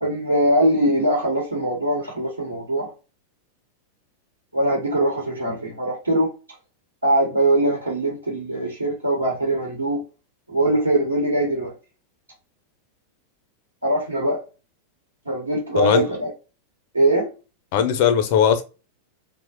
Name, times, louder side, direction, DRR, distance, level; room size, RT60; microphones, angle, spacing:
voice 1, 0.0-2.9 4.5-6.3 7.0-10.0 10.5-11.7 13.8-14.4 15.2-16.3 16.9-17.3, right 1 dB, 80° right, 1.0 m, -21 dB
voice 2, 17.7-18.6, left 8 dB, 50° left, 0.5 m, -18 dB
3.0 x 2.1 x 2.9 m
figure-of-eight pair, 90°, 0 cm